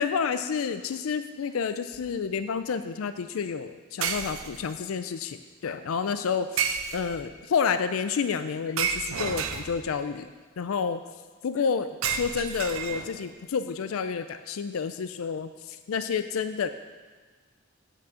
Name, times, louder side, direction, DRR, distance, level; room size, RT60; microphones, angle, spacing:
voice 1, 0.0-10.3 10.6-11.0 11.4-16.7, left 6 dB, 90° left, 10 dB, 0.4 m, -29 dB
sound 1, 1.9-2.2 4.0-4.9 6.6-7.3 8.8-10.0 12.0-13.3, right 7 dB, 85° right, 0.6 m, -31 dB
8.5 x 6.1 x 6.3 m, 1.4 s
head